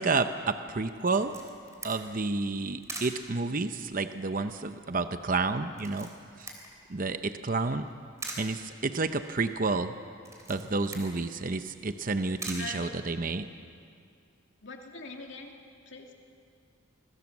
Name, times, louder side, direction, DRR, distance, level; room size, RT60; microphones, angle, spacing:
voice 1, 0.0-1.3 1.8-6.1 6.4-6.5 6.9-7.9 8.4-9.9 10.5-13.5, right 3 dB, 40° right, 9 dB, 0.8 m, -30 dB
Camera, 1.1-13.5, right 2 dB, 15° right, 3.4 m, -46 dB
voice 2, 12.6-12.9 14.6-15.5 15.9-16.1, left 3 dB, 60° left, 2 dB, 2.7 m, -42 dB
26.5 x 20.5 x 7.3 m, 2.3 s
head